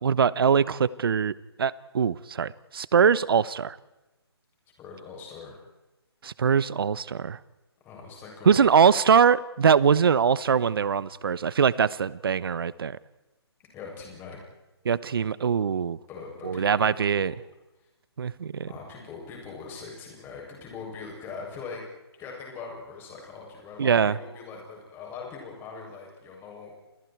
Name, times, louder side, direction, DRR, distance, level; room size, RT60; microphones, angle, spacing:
voice 1, 0.0-1.3 1.6-3.8 6.2-7.4 8.4-13.0 14.8-16.0 16.4-17.3 18.2-18.7 23.8-24.2, right 7 dB, 60° right, 19 dB, 1.0 m, -22 dB
voice 2, 4.8-5.6 7.8-8.8 13.7-14.4 16.1-16.9 17.1-17.3 18.6-21.8 22.2-26.8, left 5 dB, 15° left, -1 dB, 7.8 m, -41 dB
29.5 x 28.5 x 4.7 m, 1.0 s
figure-of-eight pair, 150°, 14 cm